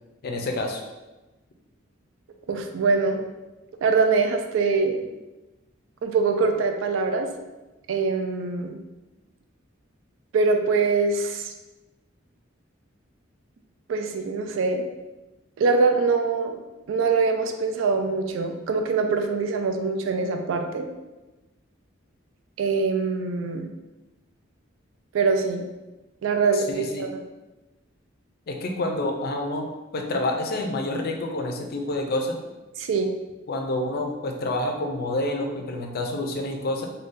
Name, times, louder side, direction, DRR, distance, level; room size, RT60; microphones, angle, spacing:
voice 1, 0.2-0.8 26.5-27.1 28.5-32.4 33.5-36.9, left 1 dB, 50° left, 3 dB, 0.4 m, -28 dB
voice 2, 2.5-3.2 3.8-5.0 6.0-7.3 7.9-8.8 10.3-11.5 13.9-14.8 15.6-16.6 16.9-20.9 22.6-23.7 25.1-25.7 26.2-27.2 32.8-33.1, right 4 dB, 70° right, 5 dB, 0.3 m, -23 dB
2.5 x 2.2 x 3.7 m, 1.1 s
head